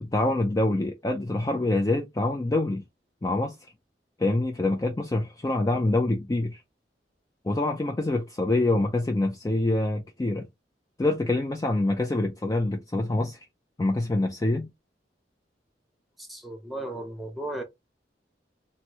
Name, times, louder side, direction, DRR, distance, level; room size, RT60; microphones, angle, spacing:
voice 1, 0.0-2.8 3.2-3.5 4.2-6.6 7.4-10.5 11.0-13.4 13.8-14.7, left 2 dB, 20° left, 0.4 m, -25 dB
voice 2, 16.2-17.6, right 1 dB, ahead, 0.8 m, -35 dB
2.9 x 2.6 x 2.9 m
head